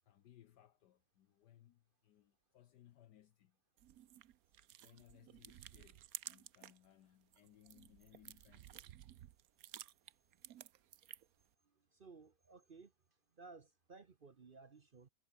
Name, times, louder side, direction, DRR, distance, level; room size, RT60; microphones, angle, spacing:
voice 1, 0.1-3.6 4.8-8.9, left 12 dB, 70° left, 1.3 m, -65 dB
sound 1, 3.8-6.9 7.2-11.4, right 12 dB, 60° right, 1.1 m, -54 dB
voice 2, 11.6-12.9 13.3-15.1, right 4 dB, 40° right, 0.8 m, -58 dB
omnidirectional pair, 2.0 m